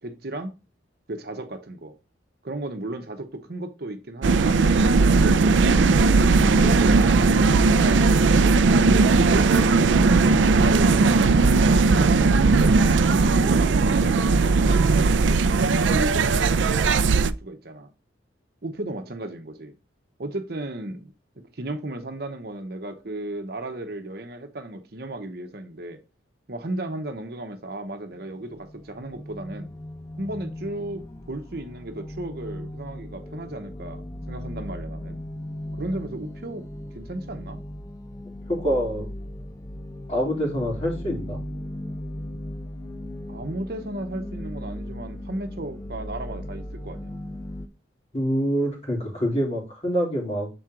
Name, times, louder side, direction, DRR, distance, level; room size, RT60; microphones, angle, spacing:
voice 1, 0.0-0.5 1.1-1.9 2.4-6.1 6.6-8.5 8.9-9.4 10.6-10.9 11.9-15.4 15.9-17.9 18.6-19.7 20.2-26.0 26.5-29.7 30.2-31.0 31.3-34.0 34.3-35.2 35.7-36.6 36.9-37.6 43.3-47.1, right 1 dB, 55° right, 1.0 m, -34 dB
sound 1, 4.2-17.3, right 4 dB, 85° right, 0.4 m, -18 dB
sound 2, 28.2-47.7, left 1 dB, 15° left, 0.5 m, -37 dB
voice 2, 38.5-39.1 40.1-41.4 48.1-50.5, equal, 35° left, 3.1 m, -25 dB
7.0 x 4.5 x 3.7 m
head